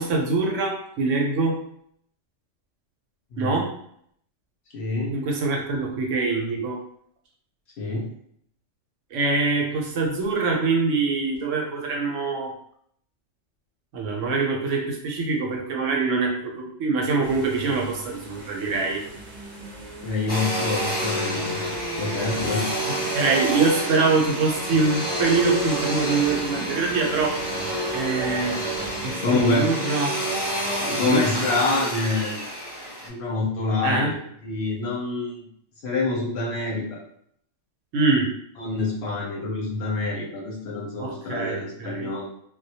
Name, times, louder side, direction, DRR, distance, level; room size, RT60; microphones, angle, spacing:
voice 1, 0.0-1.6 3.4-3.7 5.1-6.8 9.1-12.5 13.9-19.0 22.5-27.4 27.9-28.6 29.0-30.1 31.1-31.3 33.8-34.1 37.9-38.3 41.0-42.1, right 3 dB, 75° right, 0 dB, 0.9 m, -24 dB
voice 2, 3.3-3.6 4.7-5.2 7.8-8.1 20.0-23.0 29.2-29.7 30.8-32.3 33.0-34.2 34.4-35.4 35.8-37.0 38.6-42.3, left 3 dB, 65° left, -2 dB, 0.7 m, -26 dB
sound 1, 17.2-29.1, right 1 dB, 45° right, 0.6 m, -41 dB
Domestic sounds home sounds, 20.3-33.1, right 1 dB, 30° left, 0.7 m, -28 dB
2.2 x 2.1 x 2.7 m, 0.68 s
omnidirectional pair, 1.4 m